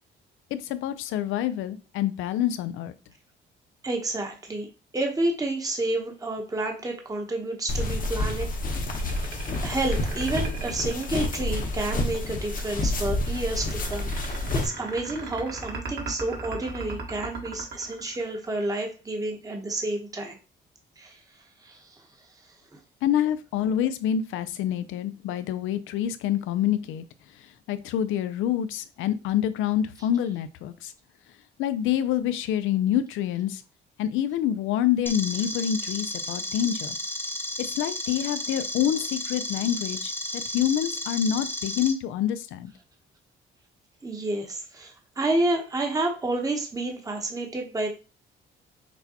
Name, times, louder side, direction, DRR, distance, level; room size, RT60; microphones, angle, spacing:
voice 1, 0.5-2.9 23.0-27.0 27.4-30.9 31.6-33.6 34.0-37.0 37.6-42.7, left 10 dB, 90° left, 13 dB, 0.4 m, -27 dB
voice 2, 3.8-4.7 4.9-8.5 9.1-9.3 9.5-20.4 21.0-21.2 21.6-22.1 44.0-47.9, right 2 dB, 20° right, 2 dB, 0.9 m, -30 dB
sound 1, 7.7-14.7, left 1 dB, 45° left, 0.9 m, -29 dB
sound 2, 8.7-11.8 13.3-18.8, right 4 dB, 55° right, 1.3 m, -38 dB
sound 3, 35.1-41.9, left 1 dB, 10° left, 0.7 m, -33 dB
6.0 x 2.2 x 2.8 m, 0.32 s
cardioid pair, 90°, 20 cm